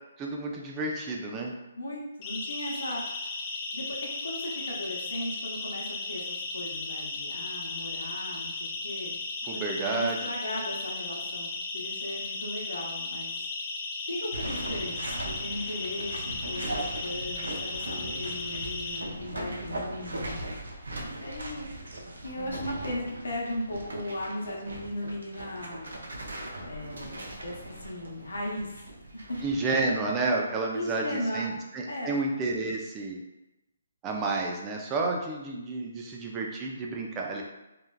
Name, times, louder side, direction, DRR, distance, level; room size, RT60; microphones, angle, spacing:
voice 1, 0.2-1.5 9.5-10.3 29.4-33.2 34.0-37.4, right 3 dB, 20° right, 0 dB, 0.4 m, -30 dB
voice 2, 1.7-3.4 3.7-9.2 9.5-13.3 14.0-20.4 21.2-21.7 22.2-26.0 26.6-28.8 29.1-29.4 30.7-31.4 31.9-32.2, left 1 dB, 80° left, -2 dB, 0.8 m, -37 dB
Siren, 2.2-19.0, left 3 dB, 25° left, 0.6 m, -36 dB
sound 1, 14.3-29.6, right 1 dB, 85° right, 0.6 m, -39 dB
3.1 x 2.3 x 2.3 m, 0.97 s
hypercardioid pair, 155°, 0 cm